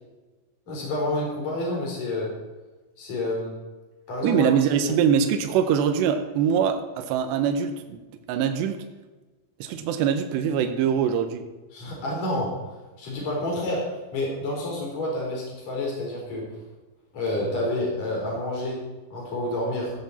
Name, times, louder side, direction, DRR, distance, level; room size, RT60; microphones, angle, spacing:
voice 1, 0.7-2.3 3.0-3.5 4.1-4.5 4.8-4.9 11.7-12.5 13.0-13.8 14.1-16.4 17.1-18.8 19.1-19.9, left 1 dB, 40° left, -2 dB, 4.8 m, -28 dB
voice 2, 4.2-8.0 8.3-8.8 9.6-11.4, right 7 dB, 75° right, 6 dB, 2.9 m, -23 dB
16.0 x 9.7 x 4.2 m, 1.2 s
omnidirectional pair, 5.4 m